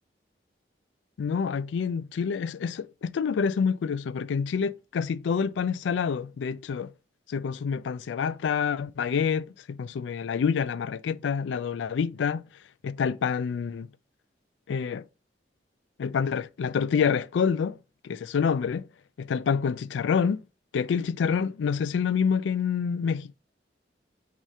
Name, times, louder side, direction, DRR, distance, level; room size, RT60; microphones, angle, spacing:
voice 1, 1.2-6.9 7.3-12.4 12.8-13.9 14.7-15.0 16.0-17.8 18.0-18.8 19.2-20.4 20.7-23.4, left 6 dB, 85° left, 0.3 m, -27 dB
4.8 x 2.8 x 3.5 m
head